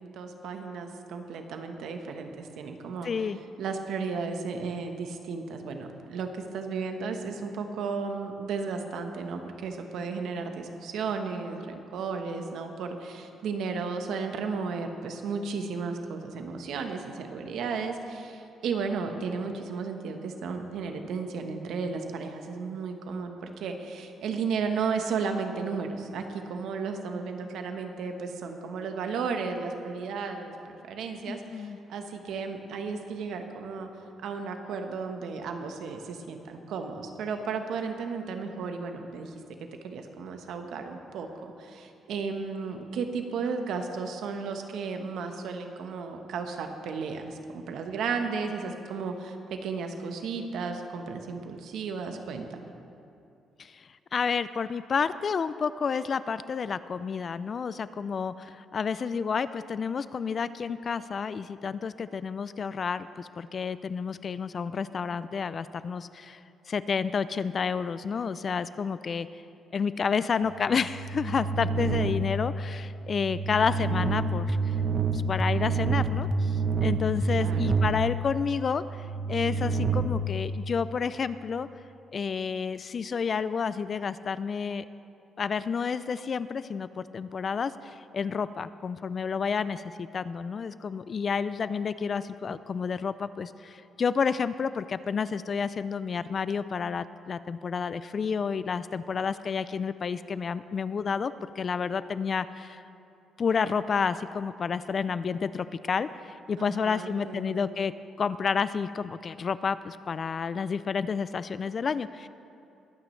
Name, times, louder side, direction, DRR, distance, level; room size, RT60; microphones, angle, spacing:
voice 1, 0.0-3.1 3.6-33.9 34.2-39.3 39.8-52.6 77.3-77.8 106.6-107.7, right 5 dB, 75° right, 5 dB, 1.2 m, -34 dB
voice 2, 3.0-3.4 31.3-31.8 53.6-66.4 66.7-69.3 69.7-74.7 75.1-81.7 82.1-84.9 85.4-102.8 103.4-112.3, left 6 dB, 45° left, 15 dB, 0.4 m, -30 dB
sound 1, 70.6-81.2, right 3 dB, 50° right, 0.7 m, -29 dB
22.5 x 9.1 x 3.3 m, 2.6 s
cardioid pair, 90°, 0 cm